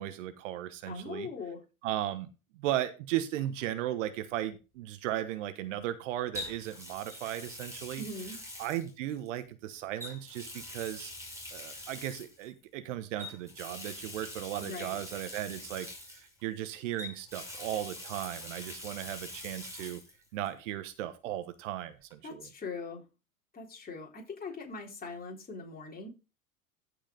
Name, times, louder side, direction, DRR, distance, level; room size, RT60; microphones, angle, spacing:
voice 1, 0.0-1.3 1.8-2.3 2.5-8.0 8.6-11.1 11.5-20.0 20.3-22.5, right 13 dB, 55° right, 11 dB, 1.2 m, -36 dB
voice 2, 0.9-1.6 8.0-8.4 14.6-15.0 22.2-23.1 23.5-26.1, left 3 dB, 20° left, 0 dB, 3.8 m, -41 dB
Water tap faucet, 3.4-3.6 6.3-9.4 10.0-12.5 13.2-16.6 17.0-20.1 20.4-20.5 22.1-22.2, left 1 dB, 5° right, 5.8 m, -44 dB
15.0 x 5.0 x 3.9 m, 0.30 s
hypercardioid pair, 90°, 43 cm